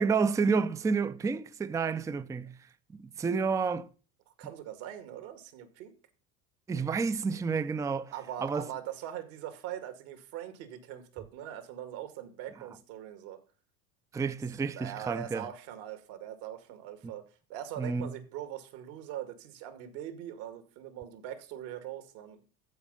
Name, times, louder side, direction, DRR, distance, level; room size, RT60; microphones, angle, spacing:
voice 1, 0.0-2.6 2.9-3.9 6.7-8.1 8.4-8.7 14.1-15.4 17.8-18.1, right 5 dB, 10° right, 0.4 m, -30 dB
voice 2, 4.4-5.9 8.1-13.4 14.7-17.2 17.5-22.4, right 11 dB, 65° right, 2.3 m, -42 dB
14.0 x 4.8 x 5.4 m
hypercardioid pair, 95°, 42 cm